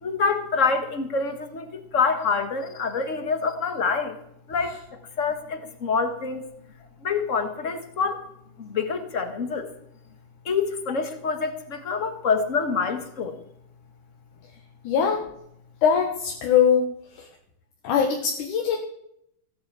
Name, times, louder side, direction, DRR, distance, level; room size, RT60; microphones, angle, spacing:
voice 1, 0.0-4.2 4.5-4.8 5.2-6.4 7.0-8.2 8.6-9.7 10.4-13.4, left 5 dB, 35° left, 7 dB, 1.3 m, -26 dB
voice 2, 14.8-15.3 15.8-16.9 17.2-17.3 17.8-18.8, left 7 dB, 75° left, 2 dB, 2.8 m, -21 dB
16.5 x 8.4 x 8.2 m, 0.75 s
omnidirectional pair, 3.7 m